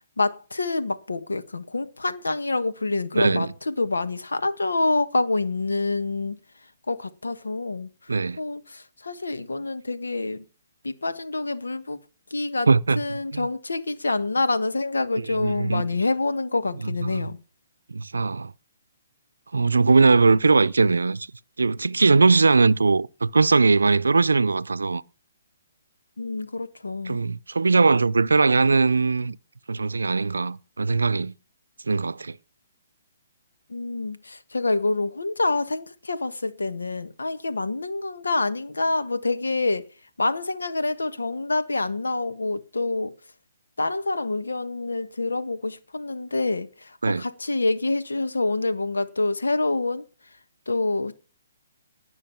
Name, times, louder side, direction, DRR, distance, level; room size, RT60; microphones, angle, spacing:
voice 1, 0.2-6.4 6.9-7.9 8.4-10.4 10.8-12.0 12.3-12.7 13.0-17.4 26.2-27.2 33.7-39.9 40.2-43.1 43.8-50.0 50.7-51.1, left 3 dB, 90° left, 1.5 m, -27 dB
voice 2, 3.1-3.5 8.1-8.4 12.7-13.0 13.3-13.5 15.3-15.9 17.1-17.2 17.9-18.5 19.5-21.3 21.6-25.0 27.1-29.4 29.7-31.3 31.9-32.4 47.0-47.3, right 4 dB, 85° right, 0.6 m, -20 dB
19.0 x 6.4 x 7.2 m
hypercardioid pair, 140°, 0 cm